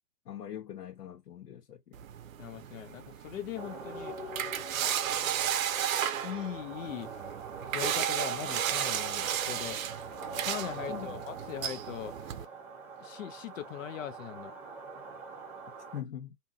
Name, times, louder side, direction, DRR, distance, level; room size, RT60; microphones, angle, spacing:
voice 1, 0.2-2.0 10.9-11.2 15.9-16.4, left 10 dB, 85° left, 1.1 m, -42 dB
sound 1, 1.9-12.4, right 10 dB, 60° right, 0.6 m, -34 dB
voice 2, 2.4-4.2 6.2-7.1 7.7-9.8 10.5-12.1 13.0-14.5, left 11 dB, 55° left, 0.6 m, -40 dB
sound 2, 3.5-16.0, right 3 dB, 5° right, 0.4 m, -44 dB
2.7 x 2.7 x 2.3 m
hypercardioid pair, 125°, 46 cm